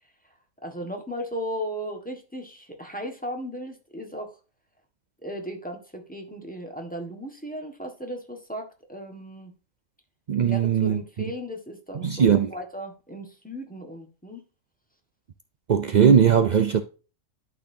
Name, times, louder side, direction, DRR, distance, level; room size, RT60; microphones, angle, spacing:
voice 1, 0.6-4.3 5.2-9.5 10.4-14.4, equal, 5° left, 1.4 m, -36 dB
voice 2, 10.3-11.0 12.0-12.5 15.7-16.8, right 7 dB, 70° right, 0.4 m, -19 dB
12.0 x 4.3 x 2.7 m
omnidirectional pair, 1.5 m